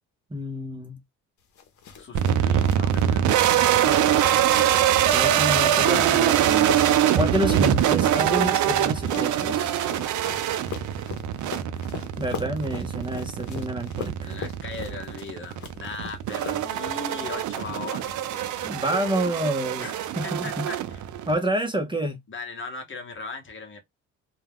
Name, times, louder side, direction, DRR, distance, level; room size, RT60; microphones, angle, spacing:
voice 1, 0.3-1.0 5.1-6.8 7.1-9.7 12.2-14.4 18.6-19.9 20.2-20.7 21.3-22.2, right 1 dB, 15° right, 0.7 m, -28 dB
sound 1, 1.6-18.3 18.6-19.2, left 7 dB, 70° left, 0.8 m, -41 dB
voice 2, 1.9-4.0 4.5-5.0 14.2-18.5 19.8-19.9 20.2-21.0 22.3-23.8, left 4 dB, 40° left, 1.0 m, -39 dB
sound 2, 2.1-21.3, right 10 dB, 75° right, 0.5 m, -23 dB
2.3 x 2.2 x 3.4 m
cardioid pair, 90°, 30 cm